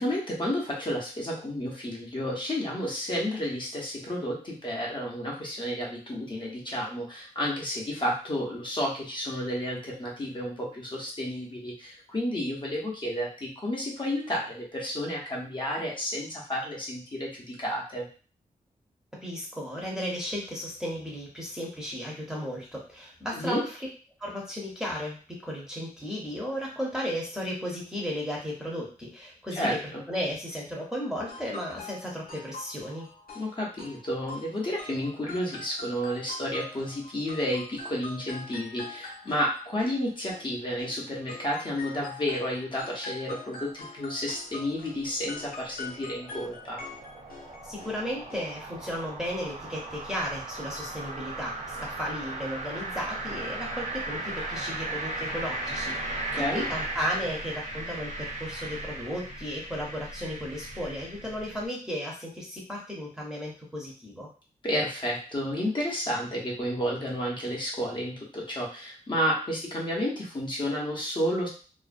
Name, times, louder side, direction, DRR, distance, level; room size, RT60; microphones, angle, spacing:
voice 1, 0.0-18.1 23.3-23.6 29.6-30.0 33.3-46.8 56.3-56.7 64.6-71.5, equal, 35° left, -3 dB, 0.7 m, -31 dB
voice 2, 19.2-23.8 24.2-29.8 30.1-33.1 47.6-64.3, equal, 5° right, -4 dB, 0.6 m, -34 dB
sound 1, 31.2-41.0 41.3-48.0 48.3-48.5 48.8-48.9, left 3 dB, 80° left, 0.6 m, -44 dB
sound 2, 44.0-61.6, right 2 dB, 65° right, 0.7 m, -37 dB
2.4 x 2.1 x 2.4 m, 0.38 s
wide cardioid pair, 120°, 15 cm